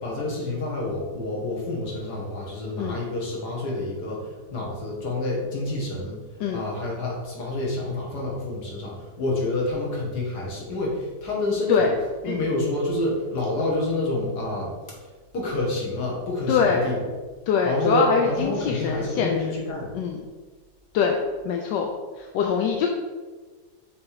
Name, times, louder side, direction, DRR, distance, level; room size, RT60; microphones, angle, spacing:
voice 1, 0.0-6.2 6.5-11.9 12.2-14.7 15.3-17.1 17.6-20.0, left 2 dB, 70° left, -3 dB, 2.2 m, -28 dB
voice 2, 16.5-16.9 17.5-19.4 19.9-20.2 20.9-21.2 21.4-21.9 22.2-22.9, left 6 dB, 85° left, 2 dB, 1.3 m, -23 dB
6.3 x 3.6 x 4.9 m, 1.4 s
omnidirectional pair, 1.8 m